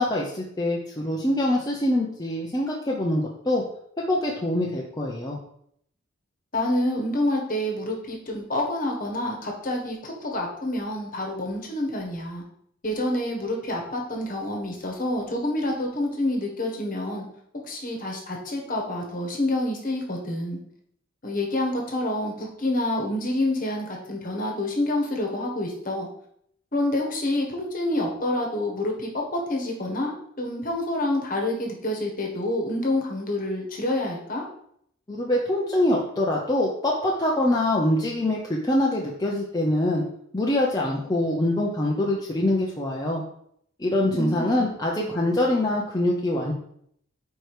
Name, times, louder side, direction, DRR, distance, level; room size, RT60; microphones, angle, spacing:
voice 1, 0.0-3.6 4.1-5.4 35.1-40.0 40.3-43.2 43.8-46.5, left 1 dB, 20° left, -3 dB, 0.7 m, -24 dB
voice 2, 6.5-12.4 12.8-17.2 17.7-20.6 21.2-26.1 26.7-34.4 44.1-44.7 45.0-45.1, left 1 dB, 40° left, 1 dB, 1.3 m, -28 dB
4.9 x 4.6 x 4.7 m, 0.69 s
head